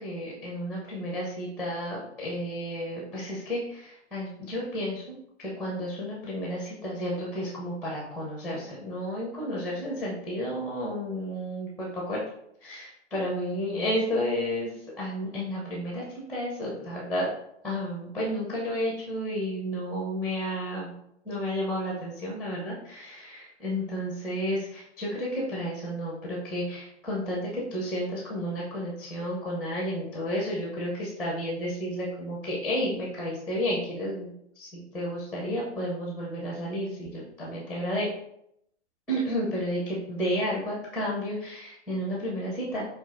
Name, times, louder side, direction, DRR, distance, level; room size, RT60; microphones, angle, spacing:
voice 1, 0.0-12.2 12.6-16.0 16.3-17.3 17.6-20.9 21.2-38.1 39.1-42.9, equal, 5° left, -3 dB, 0.6 m, -32 dB
5.5 x 2.4 x 2.5 m, 0.77 s
figure-of-eight pair, 110°, 35 cm